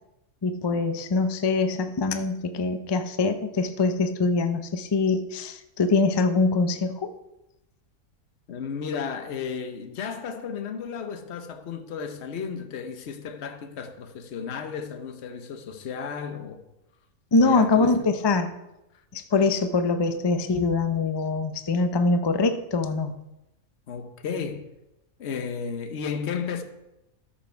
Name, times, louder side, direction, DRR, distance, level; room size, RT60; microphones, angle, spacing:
voice 1, 0.4-7.1 17.3-18.5 19.1-23.1, left 3 dB, 35° left, 0.4 m, -23 dB
voice 2, 8.5-16.6 17.4-18.1 23.9-24.7 25.2-26.6, left 6 dB, 55° left, 1.1 m, -33 dB
13.0 x 6.1 x 4.6 m
omnidirectional pair, 1.5 m